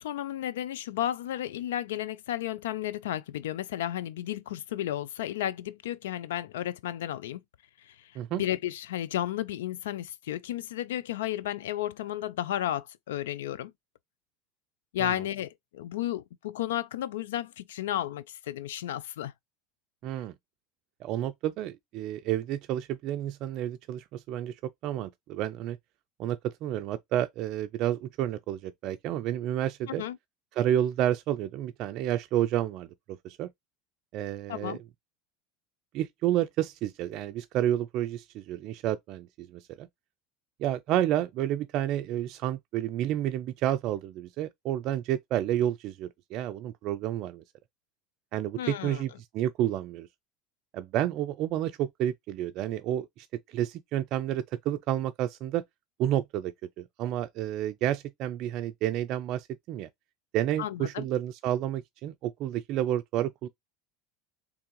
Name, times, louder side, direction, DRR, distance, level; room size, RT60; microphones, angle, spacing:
voice 1, 0.0-7.4 7.8-7.9 8.3-13.7 14.9-19.3 29.9-30.2 34.5-34.8 48.6-49.0 60.6-61.1, left 12 dB, 80° left, 0.3 m, -33 dB
voice 2, 20.0-20.3 21.0-25.8 26.2-30.0 30.6-32.9 33.2-33.5 34.1-34.8 35.9-39.9 40.6-47.4 48.3-49.1 49.3-50.1 50.7-55.6 56.0-59.9 60.3-63.5, right 12 dB, 55° right, 0.3 m, -30 dB
3.6 x 3.4 x 3.0 m
hypercardioid pair, 85°, 0 cm